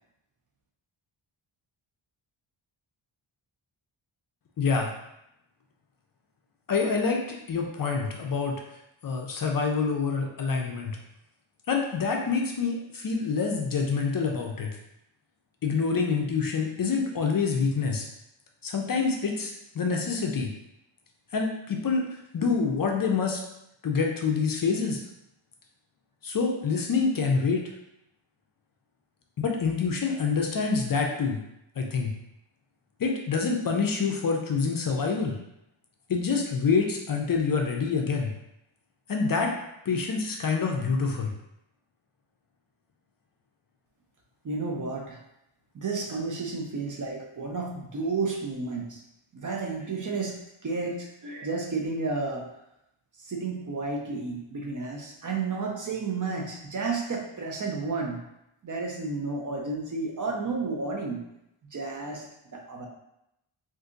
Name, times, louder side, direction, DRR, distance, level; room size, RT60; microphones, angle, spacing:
voice 1, 4.6-4.9 6.7-8.6 9.0-11.0 11.7-14.7 15.6-18.1 18.6-20.5 21.3-23.4 23.8-25.0 26.2-27.6 29.4-31.4 31.8-32.1 33.0-35.4 36.1-38.3 39.1-39.5 39.9-41.3, left 5 dB, 45° left, 1 dB, 0.4 m, -26 dB
voice 2, 44.4-45.2 45.7-49.0 49.3-50.4 50.6-52.5 53.2-58.2 58.6-61.2 61.7-62.3 62.5-62.9, right 3 dB, 40° right, 0 dB, 0.5 m, -32 dB
2.6 x 2.5 x 3.7 m, 0.83 s
wide cardioid pair, 125°, 50 cm